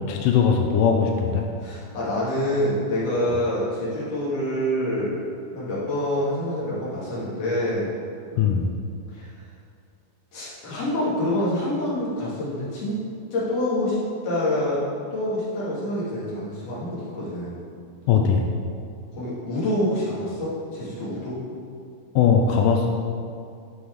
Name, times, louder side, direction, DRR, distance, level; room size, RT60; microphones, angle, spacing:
voice 1, 0.1-1.5 3.2-3.3 8.4-8.7 18.1-18.4 22.2-22.9, left 6 dB, 85° left, 2 dB, 1.9 m, -20 dB
voice 2, 1.6-5.2 5.5-7.9 9.1-9.3 10.3-12.9 13.3-14.0 14.2-14.8 15.1-17.6 19.1-21.4, left 1 dB, 45° left, -9 dB, 3.4 m, -26 dB
11.0 x 5.4 x 4.7 m, 2.4 s
omnidirectional pair, 4.4 m